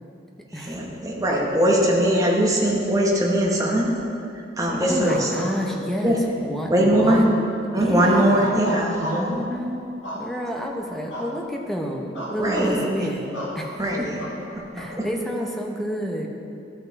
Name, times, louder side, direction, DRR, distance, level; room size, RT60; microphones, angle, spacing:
voice 1, 0.6-3.9 4.6-5.3 6.0-6.2 6.7-7.2 7.7-9.0 9.3-9.4 12.4-12.8 13.8-14.2 14.5-15.1, right 1 dB, 20° right, -2 dB, 1.2 m, -21 dB
voice 2, 4.8-7.5 7.7-8.5 9.0-14.1 14.7-16.3, equal, ahead, 0 dB, 0.8 m, -29 dB
sound 1, 5.0-6.1 7.0-7.5 7.9-9.4 10.0-10.6 11.1-11.3 11.6-11.8 12.1-12.7 13.3-13.6 14.2-14.9, equal, 85° left, 1.8 m, -32 dB
13.0 x 5.6 x 4.0 m, 2.7 s
head